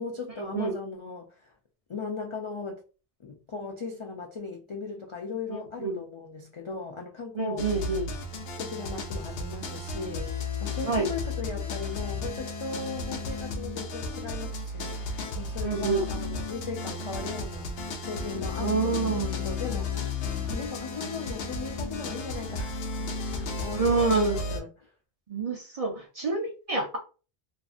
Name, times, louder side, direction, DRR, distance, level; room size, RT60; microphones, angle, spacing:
voice 1, 0.0-1.5 1.9-2.8 3.2-7.7 8.6-20.0 20.4-24.9, left 4 dB, 55° left, 0.3 m, -38 dB
voice 2, 7.4-8.1 10.8-11.1 15.6-16.1 18.6-19.4 23.7-24.4 25.3-27.0, right 3 dB, 45° right, 0.5 m, -27 dB
sound 1, 7.6-24.6, left 3 dB, 70° left, 0.8 m, -33 dB
2.5 x 2.4 x 2.4 m
omnidirectional pair, 1.1 m